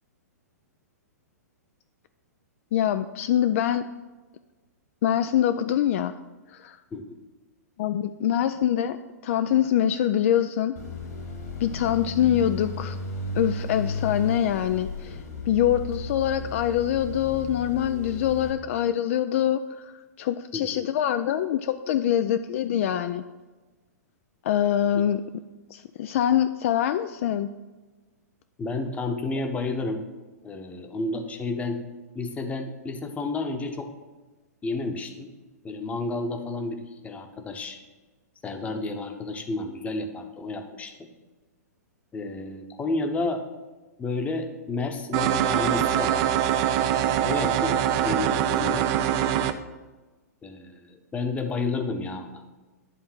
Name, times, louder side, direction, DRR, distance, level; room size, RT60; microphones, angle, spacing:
voice 1, 2.7-3.9 5.0-6.2 6.5-6.8 7.8-9.0 9.2-10.7 11.6-13.0 13.4-23.2 24.4-25.2 25.7-27.5, left 10 dB, 50° left, 10 dB, 0.3 m, -24 dB
sound 1, 10.8-18.5, left 3 dB, 70° left, 2.1 m, -34 dB
voice 2, 20.5-20.9 28.6-30.0 30.4-31.8 32.1-33.9 34.6-35.3 35.6-37.8 38.4-41.1 42.1-43.4 44.0-46.2 46.9-48.9 50.4-52.4, left 3 dB, 15° left, 6 dB, 0.9 m, -31 dB
sound 2, 45.1-49.5, right 10 dB, 40° right, 0.5 m, -23 dB
10.5 x 3.7 x 6.1 m, 1.2 s
hypercardioid pair, 120°, 9 cm